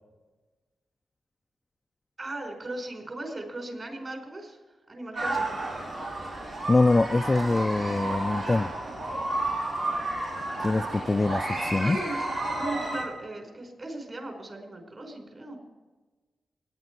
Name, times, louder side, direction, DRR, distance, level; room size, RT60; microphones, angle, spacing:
voice 1, 2.2-4.6 4.9-5.5 11.8-12.2 12.6-15.6, right 2 dB, 45° right, 3 dB, 4.8 m, -37 dB
sound 1, 5.2-13.0, right 2 dB, 85° right, 4.8 m, -31 dB
voice 2, 6.7-8.7 10.6-12.0, left 2 dB, 30° left, 8 dB, 0.3 m, -24 dB
20.0 x 9.9 x 4.7 m, 1.3 s
cardioid pair, 65°, 0 cm